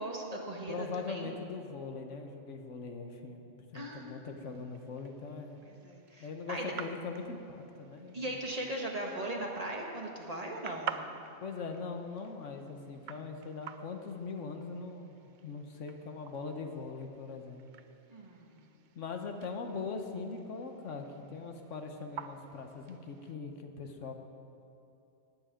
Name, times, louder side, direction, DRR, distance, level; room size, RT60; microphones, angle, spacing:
voice 1, 0.0-1.3 3.7-4.6 5.8-6.7 8.1-11.0 18.1-18.6, right 1 dB, 30° right, 0 dB, 1.4 m, -39 dB
voice 2, 0.7-3.4 3.7-5.6 6.2-8.4 11.4-17.6 18.9-24.1, left 4 dB, 70° left, 5 dB, 1.3 m, -41 dB
sound 1, 3.8-23.4, right 7 dB, 55° right, 0.5 m, -50 dB
18.0 x 9.5 x 5.1 m, 2.8 s
omnidirectional pair, 1.3 m